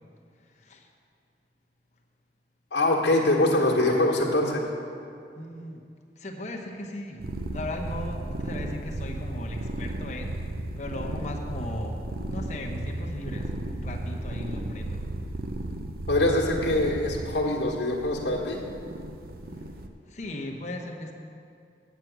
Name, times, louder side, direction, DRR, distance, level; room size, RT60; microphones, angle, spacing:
voice 1, 0.4-0.9 3.1-3.5 5.3-5.8 6.2-7.2 7.5-10.4 10.8-15.0 19.5-19.6 20.1-21.1, left 1 dB, 40° left, 1 dB, 0.9 m, -37 dB
voice 2, 2.7-4.6 16.1-18.6, left 1 dB, 70° left, -2 dB, 1.4 m, -24 dB
sound 1, 7.2-19.9, right 1 dB, 55° right, 0.6 m, -34 dB
8.3 x 6.0 x 8.0 m, 2.4 s
head